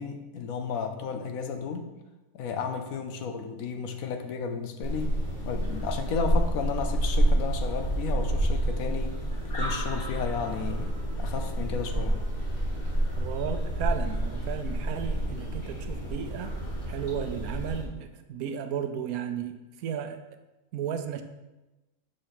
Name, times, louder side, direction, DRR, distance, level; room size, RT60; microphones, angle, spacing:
voice 1, 0.0-1.9 2.3-5.1 5.4-9.2 9.5-10.9 11.2-12.2, left 6 dB, 75° left, 6 dB, 1.1 m, -33 dB
sound 1, 4.8-17.8, right 1 dB, 40° left, 1.6 m, -29 dB
voice 2, 13.2-16.6 16.9-20.2 20.7-21.2, right 8 dB, 80° right, 8 dB, 1.1 m, -34 dB
7.6 x 3.2 x 5.8 m, 1.1 s
omnidirectional pair, 1.5 m